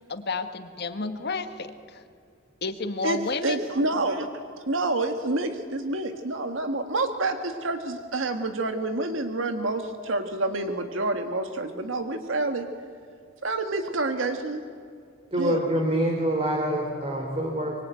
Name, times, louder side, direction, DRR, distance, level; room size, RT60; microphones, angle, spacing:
voice 1, 0.0-2.0 2.6-3.7, left 3 dB, 55° left, 8 dB, 1.6 m, -31 dB
voice 2, 3.0-4.3 4.7-12.7 13.4-14.6 15.4-15.6, right 2 dB, 75° right, 7 dB, 1.6 m, -28 dB
voice 3, 15.3-17.8, right 1 dB, 30° right, 2 dB, 3.5 m, -26 dB
24.5 x 24.0 x 9.2 m, 2.3 s
head